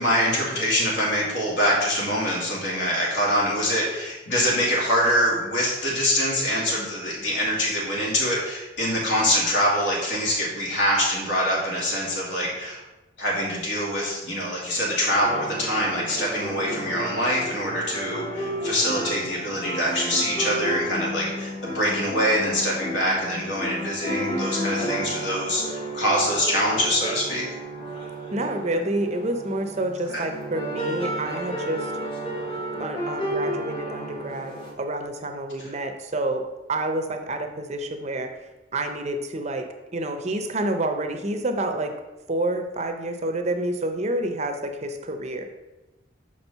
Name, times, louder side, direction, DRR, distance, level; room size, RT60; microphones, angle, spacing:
voice 1, 0.0-12.8 13.2-27.5 30.1-30.2, equal, 70° left, -4 dB, 2.3 m, -24 dB
sound 1, 15.2-34.7, equal, 25° left, 1.1 m, -32 dB
voice 2, 28.3-31.9 32.8-36.4 36.7-38.3 38.7-39.7 39.9-41.9 42.3-45.5, right 1 dB, 35° right, 5 dB, 0.6 m, -28 dB
6.1 x 4.5 x 5.4 m, 1.0 s
head